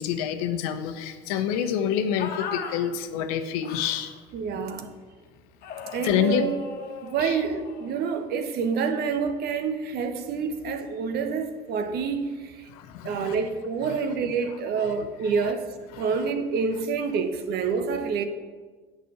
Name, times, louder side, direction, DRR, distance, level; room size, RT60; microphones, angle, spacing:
voice 1, 0.0-4.1 6.0-6.5 7.2-7.4 12.7-13.4 13.9-14.0 14.8-15.0 15.4-15.5 15.9-16.2, left 9 dB, 80° left, 0.9 m, -28 dB
sound 1, 2.2-2.8 3.6-4.1 5.6-7.9, left 6 dB, 55° left, 1.4 m, -38 dB
voice 2, 4.3-4.9 5.9-6.5 7.0-12.7 13.0-18.2, right 5 dB, 60° right, 1.2 m, -28 dB
8.5 x 6.1 x 7.2 m
supercardioid pair, 85°, 19 cm